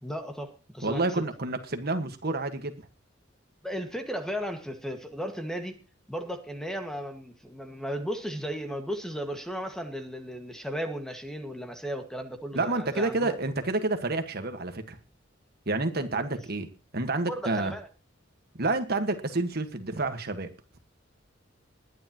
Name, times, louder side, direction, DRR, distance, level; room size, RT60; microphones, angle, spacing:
voice 1, 0.0-1.0 3.6-5.8 6.1-13.4 17.3-17.9, equal, 5° left, 1.8 m, -35 dB
voice 2, 0.8-2.9 12.5-15.0 15.7-16.7 16.9-17.7 18.6-20.8, right 2 dB, 55° right, 1.6 m, -29 dB
21.0 x 10.0 x 3.0 m
head